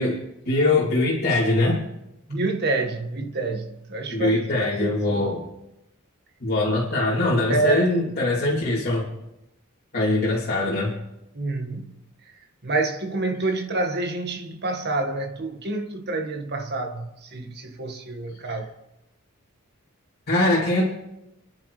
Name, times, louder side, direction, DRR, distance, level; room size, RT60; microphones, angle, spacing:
voice 1, 0.0-1.8 4.1-5.5 6.4-9.1 9.9-10.9 18.5-18.6 20.3-20.9, left 2 dB, 45° left, 3.1 m, -22 dB
voice 2, 2.3-5.3 7.5-7.9 11.3-12.0 12.6-18.7, right 2 dB, 50° right, 1.7 m, -28 dB
30.0 x 10.5 x 3.3 m
head